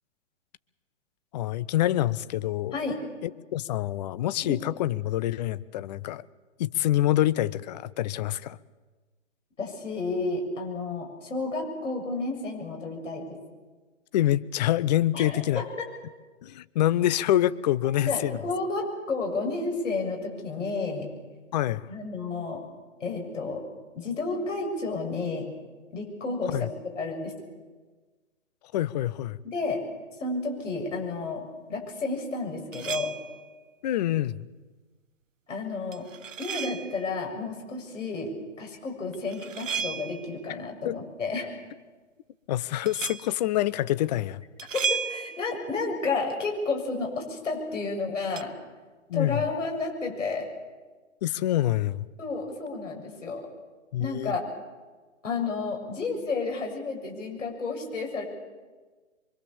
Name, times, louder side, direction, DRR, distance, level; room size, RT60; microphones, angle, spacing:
voice 1, 1.3-2.8 3.2-6.2 6.6-8.6 14.1-15.6 16.4-18.3 21.5-21.9 26.5-26.7 28.7-29.4 33.8-34.5 40.8-41.0 42.5-44.4 49.1-49.4 51.2-52.1 53.9-54.3, left 13 dB, 35° left, 18 dB, 0.6 m, -26 dB
voice 2, 9.6-13.4 15.1-15.8 18.0-21.1 21.9-22.6 23.0-23.6 23.9-25.5 25.9-26.6 26.9-27.3 29.4-29.8 30.2-33.2 35.5-36.1 36.4-41.5 44.7-48.5 49.1-50.5 52.2-53.5 54.0-54.4 55.2-58.2, left 3 dB, 75° left, 1 dB, 7.3 m, -31 dB
sound 1, 32.7-33.5 35.9-37.1 39.1-40.4 42.9-43.4 44.6-45.6 48.4-48.5, right 7 dB, 80° right, 0.8 m, -34 dB
24.0 x 24.0 x 7.2 m, 1.3 s
figure-of-eight pair, 125°, 38 cm